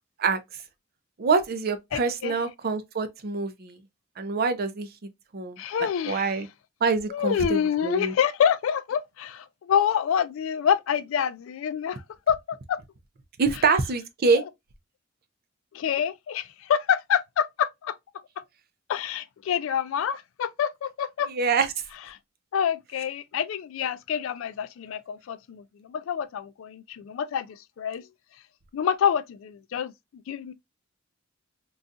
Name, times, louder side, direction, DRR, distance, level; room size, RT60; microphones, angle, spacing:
voice 1, 1.2-3.8 4.2-4.9 5.3-6.5 6.8-8.1 13.4-14.4 21.3-21.7, right 4 dB, 50° right, 0.5 m, -25 dB
voice 2, 1.9-2.4 5.6-6.4 7.1-12.8 15.7-18.0 18.9-21.3 22.5-28.1 28.7-29.9 30.3-30.5, left 8 dB, 70° left, 0.3 m, -27 dB
3.9 x 2.3 x 2.4 m
head